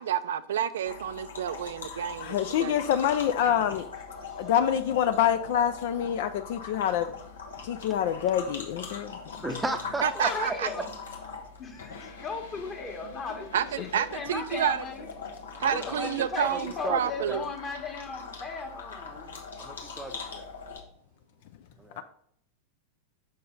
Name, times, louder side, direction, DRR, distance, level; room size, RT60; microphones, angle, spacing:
voice 1, 0.0-2.8 10.0-10.7 13.5-14.8 15.6-17.5, right 9 dB, 60° right, 0.3 m, -29 dB
sound 1, 0.9-20.8, left 4 dB, 70° left, 1.1 m, -42 dB
voice 2, 1.8-3.9 4.4-7.2 7.6-9.2 13.8-13.9 22.0-22.1, left 9 dB, 50° left, 0.4 m, -26 dB
voice 3, 9.4-10.5 15.5-17.4 19.6-20.5 21.8-22.0, right 2 dB, 10° right, 0.7 m, -35 dB
voice 4, 10.0-10.9 11.6-15.1 15.6-19.3, left 4 dB, 30° left, 1.5 m, -37 dB
6.5 x 5.4 x 3.8 m
figure-of-eight pair, 90°, 0 cm